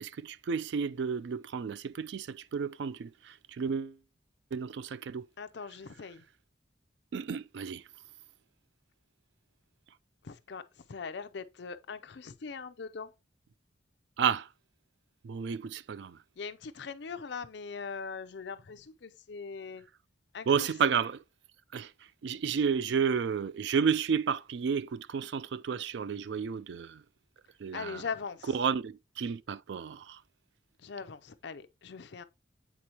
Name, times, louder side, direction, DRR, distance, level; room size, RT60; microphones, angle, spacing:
voice 1, 0.0-3.1 3.6-4.0 4.5-5.2 7.1-7.8 14.2-14.5 15.2-16.2 20.5-21.2 21.7-21.9 22.2-27.0 27.6-28.0 28.5-30.2, right 6 dB, 60° right, 0.3 m, -31 dB
voice 2, 5.4-6.2 10.2-10.6 10.9-13.1 16.4-19.8 20.3-20.7 27.7-28.5 30.8-32.2, left 5 dB, 60° left, 0.5 m, -41 dB
8.3 x 4.3 x 2.9 m
head